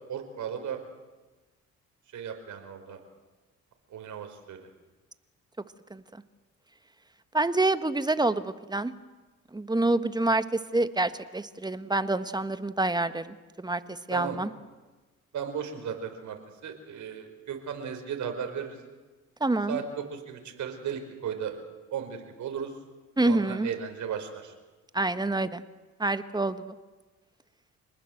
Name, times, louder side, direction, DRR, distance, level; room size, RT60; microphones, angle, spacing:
voice 1, 0.1-0.8 2.1-3.0 3.9-4.7 14.1-14.4 15.3-18.8 19.7-21.6 21.9-22.7 23.2-24.5, right 7 dB, 65° right, 5 dB, 4.9 m, -35 dB
voice 2, 7.3-8.9 9.5-14.5 19.4-19.8 23.2-23.7 24.9-25.6 26.0-26.7, right 2 dB, 15° right, 11 dB, 1.3 m, -27 dB
27.0 x 19.5 x 7.8 m, 1.2 s
cardioid pair, 85°, 32 cm